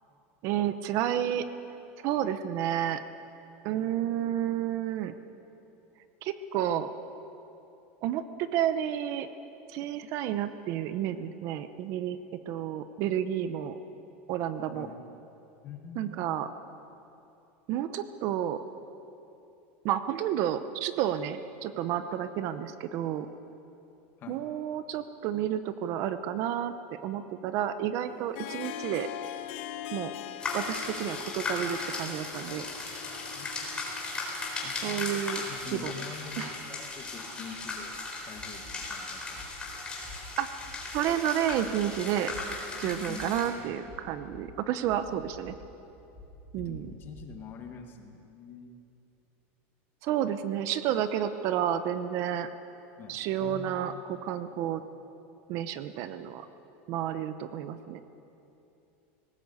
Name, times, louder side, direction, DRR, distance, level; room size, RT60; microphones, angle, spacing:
voice 1, 0.4-1.5 2.0-3.0 3.6-5.1 6.2-6.9 8.0-9.3 9.7-13.8 14.3-14.9 16.0-16.5 17.7-18.6 19.8-23.3 24.3-29.1 29.9-30.1 30.5-32.7 34.8-35.9 36.4-36.5 40.4-40.5 40.9-42.3 42.8-45.6 46.5-46.9 50.0-52.5 53.1-54.8 55.5-56.5 56.9-58.0, right 10 dB, 45° right, 11 dB, 0.9 m, -31 dB
voice 2, 15.6-16.3 24.2-24.4 33.3-33.7 34.6-35.1 35.5-38.0 38.3-39.4 42.8-43.7 46.6-48.8 53.0-54.0, left 6 dB, 30° left, 4 dB, 2.0 m, -45 dB
Harp, 28.1-35.8, left 11 dB, 60° left, 1.1 m, -42 dB
sound 1, 30.4-43.5, left 3 dB, 15° left, 4.0 m, -37 dB
sound 2, 38.4-38.7 39.3-39.6 40.0-40.2 40.6-41.0 41.5-41.8 42.3-42.4 42.9-43.3 43.9-44.4 44.9-45.5 46.1-47.2, left 3 dB, 15° right, 6.9 m, -48 dB
19.0 x 17.5 x 8.4 m, 2.8 s
supercardioid pair, 160°, 7 cm